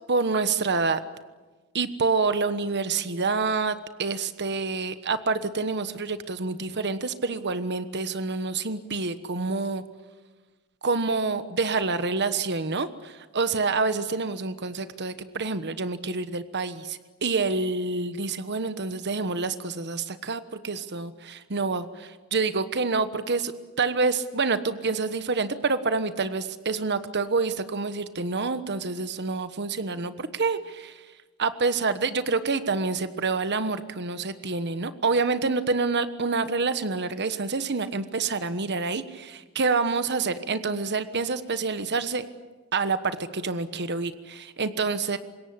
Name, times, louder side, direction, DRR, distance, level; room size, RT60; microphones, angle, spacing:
voice 1, 0.1-1.0 1.7-9.8 10.8-23.5 23.8-31.0 31.4-42.3 42.7-45.2, right 4 dB, 55° right, 11 dB, 1.3 m, -27 dB
26.0 x 21.5 x 8.5 m, 1.3 s
head